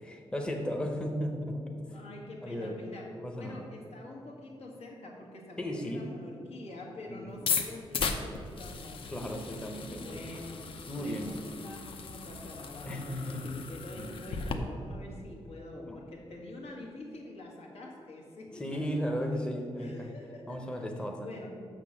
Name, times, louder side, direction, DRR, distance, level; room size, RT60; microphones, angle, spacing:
voice 1, 0.0-2.0 2.4-2.8 3.2-3.7 5.6-6.1 7.1-7.3 9.1-10.4 10.9-11.3 12.9-13.4 14.0-14.1 15.9-16.0 18.5-20.1 20.5-21.3, equal, 10° left, 2 dB, 0.7 m, -35 dB
voice 2, 1.9-9.1 9.9-18.8 19.8-21.5, left 1 dB, 85° left, -1 dB, 1.8 m, -46 dB
sound 1, 7.3-14.5, left 5 dB, 60° left, 0.7 m, -37 dB
6.3 x 6.0 x 7.4 m, 2.3 s
wide cardioid pair, 175°, 10 cm